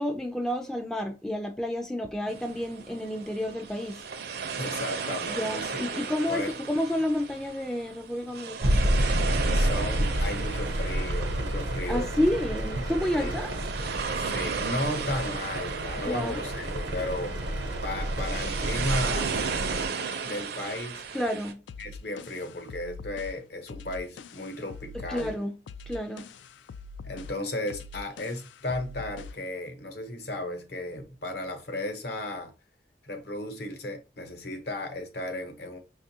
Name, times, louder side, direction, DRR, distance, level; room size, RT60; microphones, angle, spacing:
voice 1, 0.0-4.0 5.2-8.9 11.9-13.5 16.0-16.5 21.1-21.6 24.9-25.5 25.9-26.3, left 1 dB, 5° left, 0.3 m, -30 dB
sound 1, 2.3-21.5, right 5 dB, 60° right, 0.5 m, -35 dB
voice 2, 4.6-6.0 6.3-6.5 9.5-12.1 13.2-13.3 14.1-19.3 20.2-21.0 21.8-25.3 27.0-32.5 33.0-35.8, left 1 dB, 60° left, 0.9 m, -35 dB
sound 2, 8.6-19.9, right 1 dB, 90° right, 0.8 m, -29 dB
sound 3, 21.7-29.5, left 4 dB, 90° left, 0.3 m, -44 dB
5.8 x 2.4 x 2.7 m
head